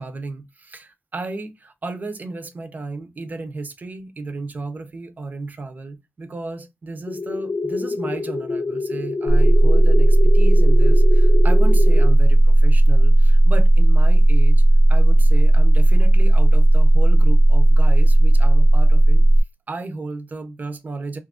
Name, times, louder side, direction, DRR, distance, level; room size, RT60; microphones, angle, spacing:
voice 1, 0.0-14.6 14.9-19.3 19.7-21.2, right 3 dB, 35° right, 0.5 m, -33 dB
sound 1, 7.1-12.1, left 3 dB, 35° left, 0.5 m, -27 dB
sound 2, 9.3-19.4, right 1 dB, 80° left, 0.6 m, -13 dB
2.7 x 2.3 x 3.5 m
wide cardioid pair, 175°, 5 cm